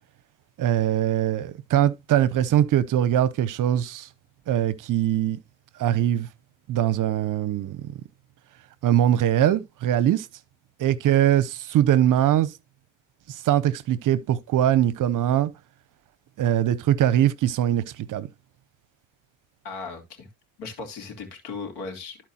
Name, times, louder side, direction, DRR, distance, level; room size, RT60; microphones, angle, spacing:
voice 1, 0.6-4.1 4.5-5.4 5.8-6.3 6.7-7.9 8.8-10.3 10.8-12.5 13.3-15.5 16.4-18.3, right 11 dB, 50° right, 0.7 m, -22 dB
voice 2, 19.6-20.3 20.6-22.2, left 4 dB, 70° left, 3.0 m, -37 dB
13.5 x 4.5 x 2.8 m
supercardioid pair, 85°, 40 cm